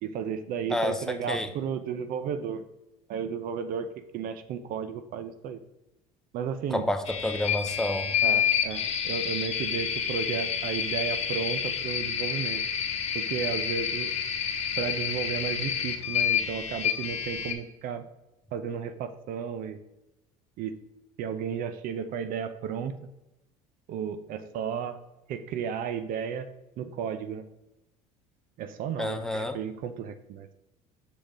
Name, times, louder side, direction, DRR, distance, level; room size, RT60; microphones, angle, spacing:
voice 1, 0.0-2.6 3.1-3.9 4.1-5.6 6.3-6.8 8.2-12.6 13.1-14.1 14.8-18.1 18.5-19.8 20.6-20.8 21.2-23.0 23.9-25.0 25.3-26.5 26.8-27.4 28.6-30.5, right 7 dB, 60° right, 11 dB, 0.6 m, -33 dB
voice 2, 6.7-8.1 29.0-29.6, left 1 dB, 5° left, 6 dB, 0.8 m, -29 dB
sound 1, 7.1-17.5, left 8 dB, 40° left, 1.1 m, -29 dB
6.6 x 5.1 x 3.7 m, 0.94 s
supercardioid pair, 100°, 17 cm